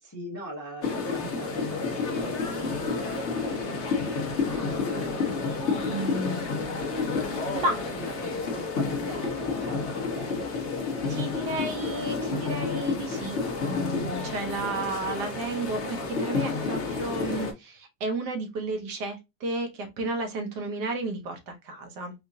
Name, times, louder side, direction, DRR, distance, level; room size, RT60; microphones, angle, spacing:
voice 1, 0.0-5.4 8.0-10.4, equal, 25° left, 0 dB, 0.4 m, -41 dB
sound 1, 0.8-17.5, left 4 dB, 50° left, 0.9 m, -30 dB
voice 2, 5.9-6.5 7.5-7.9 11.1-13.4 13.7-22.1, right 2 dB, 70° right, 4 dB, 1.3 m, -32 dB
4.6 x 2.5 x 2.6 m, 0.23 s
omnidirectional pair, 1.9 m